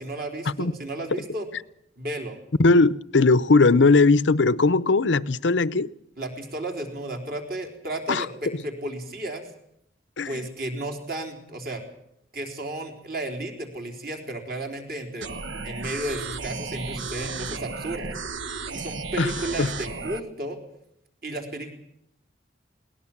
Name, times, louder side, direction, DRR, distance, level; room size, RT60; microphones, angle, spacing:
voice 1, 0.0-1.5 2.0-2.4 6.2-9.5 10.3-11.8 12.3-15.3 15.6-18.2 18.7-20.6 21.2-21.7, right 1 dB, 50° right, 3.8 m, -33 dB
voice 2, 2.6-5.9 8.1-8.3 8.5-8.6 10.2-10.5 19.2-19.3 19.6-19.7, left 3 dB, 85° left, 0.7 m, -19 dB
sound 1, 15.2-20.2, right 4 dB, 90° right, 1.3 m, -34 dB
22.0 x 18.0 x 7.3 m
head